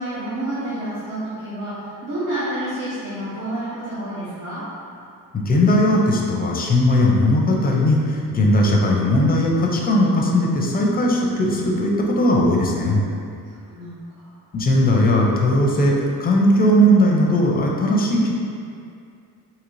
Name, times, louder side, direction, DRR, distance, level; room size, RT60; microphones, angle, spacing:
voice 1, 0.0-4.6 13.4-14.3, right 1 dB, 65° right, -11 dB, 0.9 m, -29 dB
voice 2, 5.5-13.0 14.5-15.9 16.2-18.3, left 1 dB, 25° left, -1 dB, 0.5 m, -18 dB
3.8 x 2.8 x 3.1 m, 2.4 s
cardioid pair, 130°, 35 cm